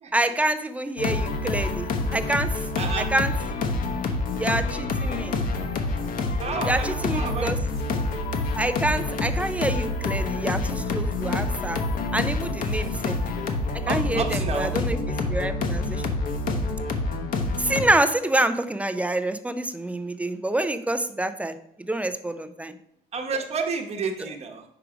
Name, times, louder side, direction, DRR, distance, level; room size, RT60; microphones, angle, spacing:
voice 1, 0.1-2.6 3.0-3.3 4.4-5.4 6.7-7.6 8.5-11.8 12.1-13.2 13.9-16.1 17.6-22.7, right 1 dB, 10° right, 11 dB, 0.4 m, -27 dB
sound 1, 1.0-17.8, left 3 dB, 55° left, 0.9 m, -27 dB
voice 2, 2.8-3.1 6.4-7.5 13.9-14.7 23.1-24.6, right 5 dB, 40° right, 3 dB, 1.1 m, -30 dB
4.8 x 4.6 x 5.0 m, 0.77 s
cardioid pair, 110°, 17 cm